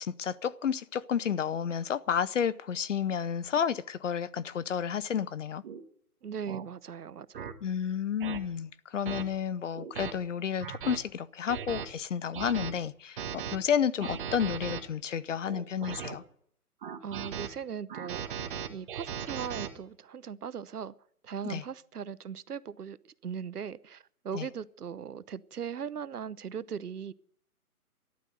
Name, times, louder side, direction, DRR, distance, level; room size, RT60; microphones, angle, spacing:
voice 1, 0.0-5.6 7.6-16.2 21.4-21.6 24.3-24.5, left 8 dB, 55° left, 0.8 m, -31 dB
sound 1, 5.6-5.8 6.5-6.6 7.3-7.5 8.2-8.4 9.1-9.2 9.8-10.1 10.6-11.0 11.5-11.8 12.3-12.7 13.2-13.6 14.0-14.8 15.5-16.2 16.8-17.5 17.9-19.7, right 8 dB, 35° right, 1.6 m, -37 dB
voice 2, 6.2-7.5 17.0-20.9 21.2-23.0 23.2-27.1, right 7 dB, 85° right, 1.0 m, -39 dB
14.0 x 11.5 x 7.9 m
hypercardioid pair, 155°, 45 cm